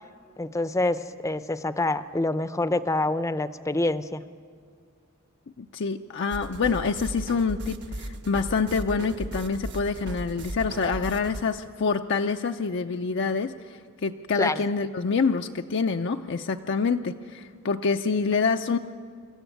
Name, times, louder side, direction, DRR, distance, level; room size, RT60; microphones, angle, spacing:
voice 1, 0.4-4.2 14.4-14.6, left 2 dB, 15° left, 12 dB, 0.6 m, -26 dB
voice 2, 5.6-18.8, left 5 dB, 55° left, 5 dB, 0.5 m, -26 dB
sound 1, 6.3-11.4, right 1 dB, 55° right, 1.2 m, -36 dB
26.0 x 14.0 x 9.2 m, 2.1 s
head